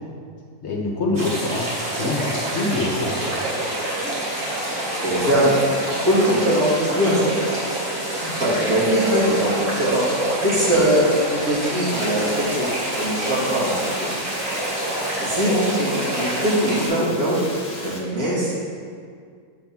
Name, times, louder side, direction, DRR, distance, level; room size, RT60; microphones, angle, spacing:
voice 1, 0.6-1.7 2.0-3.4, left 2 dB, 55° left, -2 dB, 0.9 m, -25 dB
sound 1, 1.1-16.9, right 1 dB, 45° right, 1.8 m, -27 dB
voice 2, 4.6-5.6 6.0-7.5 8.1-10.1 10.4-12.6 13.0-14.1 15.2-18.5, equal, 70° right, -9 dB, 2.3 m, -21 dB
sound 2, 11.9-18.0, left 1 dB, 30° left, 1.2 m, -37 dB
7.3 x 3.5 x 5.7 m, 2.1 s
omnidirectional pair, 1.6 m